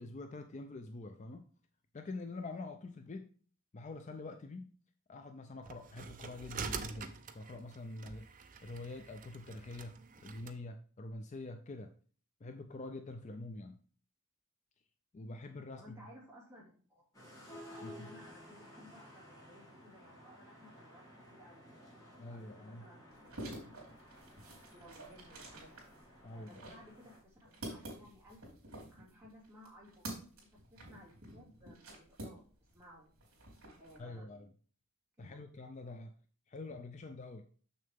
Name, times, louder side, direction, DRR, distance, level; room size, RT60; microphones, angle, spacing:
voice 1, 0.0-1.5 1.9-3.3 3.7-4.7 5.1-11.9 12.4-13.8 15.1-16.0 17.8-18.1 22.2-22.9 26.2-26.6 34.0-34.5 35.2-36.1 36.5-37.5, left 2 dB, 35° left, 7 dB, 0.4 m, -46 dB
sound 1, 5.6-10.6, right 5 dB, 40° right, 0.6 m, -46 dB
voice 2, 15.8-17.1 17.6-21.8 22.3-23.3 24.3-24.4 24.7-25.9 26.3-28.6 28.9-32.5 32.7-33.1 33.8-34.3 35.2-35.4, equal, 10° right, -5 dB, 2.5 m, -58 dB
sound 2, 17.1-27.2, equal, 15° left, 3.0 m, -55 dB
sound 3, 23.1-32.8 33.1-34.0, right 1 dB, 70° right, 3.0 m, -49 dB
6.6 x 6.5 x 3.6 m, 0.43 s
head